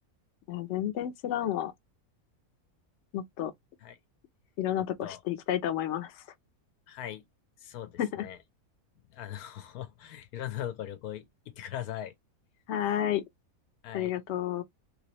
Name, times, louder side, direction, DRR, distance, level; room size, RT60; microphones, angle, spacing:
voice 1, 0.5-1.7 3.1-3.5 4.6-6.2 8.0-8.3 12.7-13.2 13.9-14.6, left 11 dB, 60° left, 0.9 m, -31 dB
voice 2, 4.8-5.2 6.9-7.2 7.6-8.4 9.1-12.1 13.8-14.1, left 11 dB, 85° left, 1.2 m, -40 dB
3.4 x 3.0 x 2.9 m
omnidirectional pair, 1.6 m